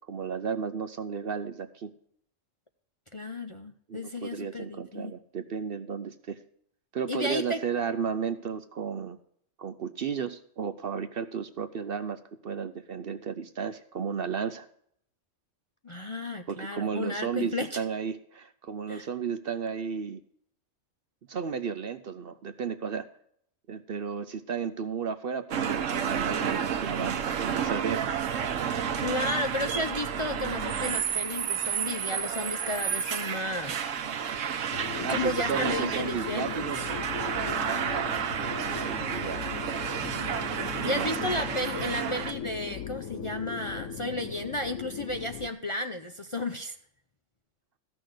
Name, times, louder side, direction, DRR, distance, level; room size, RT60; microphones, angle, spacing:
voice 1, 0.1-1.9 3.9-6.4 6.9-9.2 9.6-14.7 16.5-20.2 21.3-23.1 23.7-28.1 35.0-36.8 38.2-39.4 40.8-41.1, right 6 dB, 55° right, 11 dB, 0.8 m, -34 dB
voice 2, 3.1-5.1 7.1-7.6 15.8-17.8 18.9-19.1 29.0-33.8 35.1-36.7 37.5-37.9 40.8-46.8, left 1 dB, 30° left, 5 dB, 0.6 m, -33 dB
sound 1, 25.5-42.3, right 8 dB, 75° right, 1.3 m, -31 dB
sound 2, 34.7-45.5, left 8 dB, 75° left, 1.1 m, -39 dB
14.5 x 6.3 x 6.3 m, 0.68 s
omnidirectional pair, 1.3 m